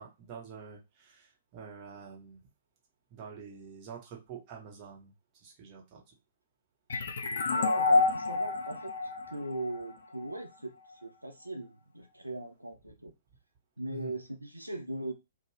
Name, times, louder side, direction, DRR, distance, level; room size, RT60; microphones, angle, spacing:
voice 1, 0.0-2.4 3.1-6.0 13.9-14.1, right 6 dB, 30° right, 1.0 m, -47 dB
sound 1, 6.9-10.3, left 3 dB, 60° left, 0.4 m, -29 dB
voice 2, 7.5-10.7 11.0-13.1 13.8-15.1, right 1 dB, 90° right, 0.4 m, -39 dB
2.6 x 2.2 x 3.2 m
figure-of-eight pair, 115°, 0 cm